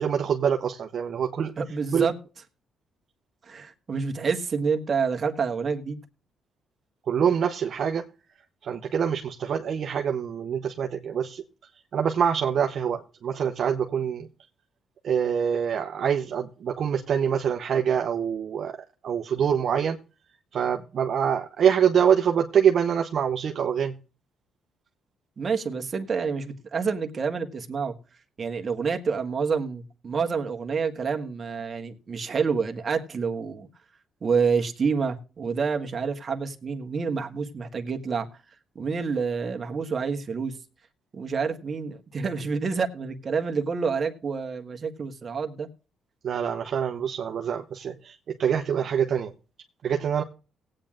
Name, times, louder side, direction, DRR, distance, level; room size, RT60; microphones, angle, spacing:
voice 1, 0.0-1.5 1.9-2.1 7.1-8.0 8.6-11.4 11.9-14.3 15.0-18.8 19.0-20.0 20.5-24.0 46.2-49.3 49.8-50.2, right 8 dB, 60° right, 0.9 m, -25 dB
voice 2, 1.6-2.2 3.4-6.0 25.4-27.9 28.4-33.7 34.2-40.6 41.1-45.7, right 5 dB, 40° right, 1.5 m, -28 dB
18.5 x 8.9 x 2.5 m
cardioid pair, 90°, 0 cm